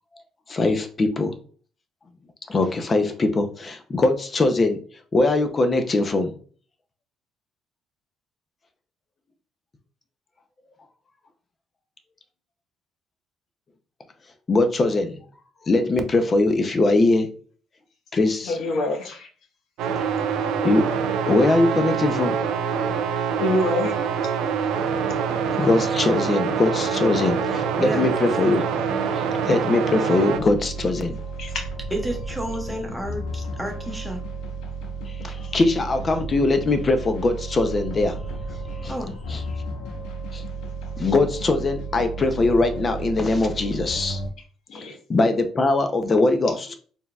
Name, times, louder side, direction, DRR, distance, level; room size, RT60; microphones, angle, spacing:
voice 1, 0.5-1.3 2.5-4.8 5.1-6.3 14.5-15.2 15.7-17.3 18.1-18.5 20.6-20.8 21.3-22.4 25.6-28.6 29.1-31.2 35.2-38.2 38.8-38.9 39.3-39.4 40.3-40.4 41.0-44.2 45.1-46.7, left 2 dB, 30° left, 0.6 m, -21 dB
voice 2, 18.4-19.3 23.4-24.0 31.4-31.7 44.7-45.0, left 1 dB, 60° left, 1.1 m, -26 dB
sound 1, 19.8-30.4, right 6 dB, 80° right, 0.5 m, -25 dB
sound 2, 30.3-44.3, right 3 dB, 90° left, 0.8 m, -33 dB
voice 3, 31.9-34.2 38.9-39.2, right 1 dB, ahead, 0.9 m, -30 dB
4.4 x 3.5 x 2.3 m
cardioid pair, 120°, 0 cm